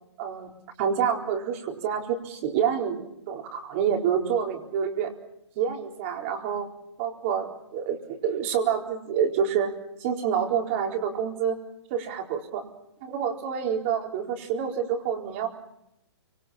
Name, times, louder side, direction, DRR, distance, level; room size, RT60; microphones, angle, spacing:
voice 1, 0.2-5.1 5.6-6.7 7.0-9.7 10.0-11.6 11.9-12.6 13.0-15.5, right 8 dB, 25° right, 2 dB, 4.1 m, -27 dB
29.0 x 26.0 x 5.7 m, 0.79 s
hypercardioid pair, 170°, 15 cm